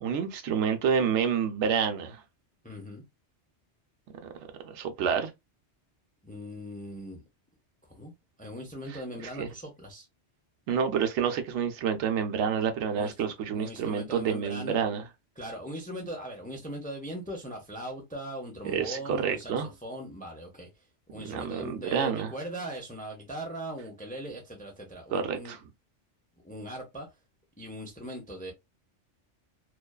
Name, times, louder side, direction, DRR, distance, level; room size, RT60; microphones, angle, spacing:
voice 1, 0.0-2.2 4.7-5.3 9.4-9.5 10.7-15.0 18.6-19.7 21.2-22.3 25.1-25.6, right 7 dB, 80° right, 0.9 m, -28 dB
voice 2, 2.6-3.0 6.2-7.2 7.9-8.1 8.4-10.1 12.9-14.8 15.4-20.7 21.1-25.6 26.4-27.1 27.6-28.5, right 1 dB, 10° left, 0.4 m, -40 dB
2.5 x 2.3 x 2.2 m
omnidirectional pair, 1.2 m